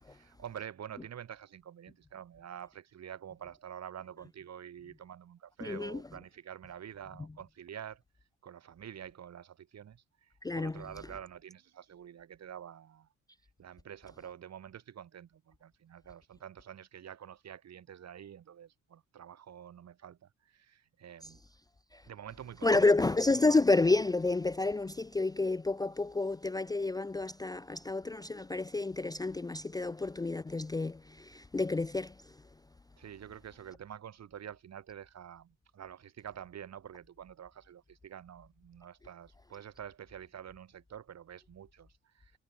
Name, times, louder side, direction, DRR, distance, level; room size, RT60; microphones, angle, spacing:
voice 1, 0.0-8.0 8.4-13.1 13.6-21.4 22.0-22.9 33.0-42.3, right 9 dB, 60° right, 4.9 m, -48 dB
voice 2, 5.6-6.0 10.4-10.8 21.9-22.0 22.6-32.1, left 3 dB, 15° left, 0.5 m, -29 dB
cardioid pair, 90°, 30 cm